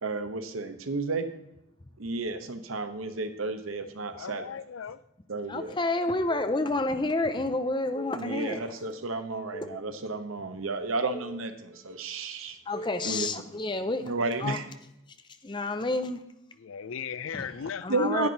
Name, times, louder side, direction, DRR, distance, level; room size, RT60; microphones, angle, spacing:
voice 1, 0.0-1.3 2.0-4.5 5.3-5.8 8.1-12.6 13.0-13.3 14.0-14.7 17.9-18.3, right 3 dB, 90° right, 1.0 m, -32 dB
voice 2, 4.1-5.0 7.4-7.5 16.6-17.9 18.2-18.3, left 7 dB, 80° left, 0.4 m, -37 dB
voice 3, 5.5-8.6 9.5-9.9 11.1-11.3 12.7-14.0 14.4-14.6 15.4-16.2 17.3-17.5 17.8-18.3, left 2 dB, 20° left, 0.6 m, -29 dB
10.0 x 8.7 x 4.0 m
head